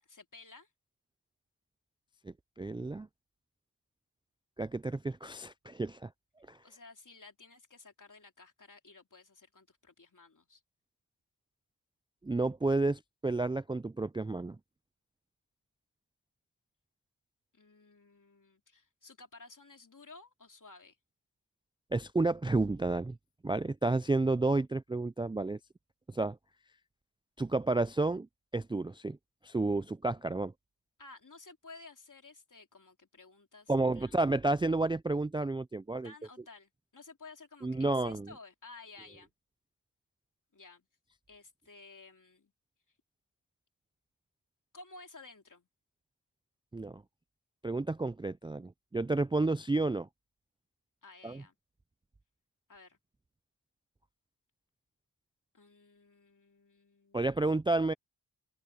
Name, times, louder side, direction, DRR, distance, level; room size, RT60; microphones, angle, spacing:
voice 1, 0.0-0.7 6.6-10.6 17.5-21.0 31.0-34.1 36.0-39.3 40.5-40.9 41.3-42.5 44.7-45.7 51.0-51.5 52.7-53.0 55.5-57.5, left 3 dB, 50° left, 2.9 m, -54 dB
voice 2, 2.2-3.1 4.6-6.1 6.5-6.6 12.2-14.6 21.9-23.2 23.4-25.6 26.1-26.4 27.4-28.3 28.5-29.2 29.4-30.5 33.7-36.1 37.6-38.3 46.7-47.0 47.6-50.1 51.2-51.4 57.1-57.9, right 2 dB, 15° right, 0.3 m, -31 dB
open air
wide cardioid pair, 75°, 40 cm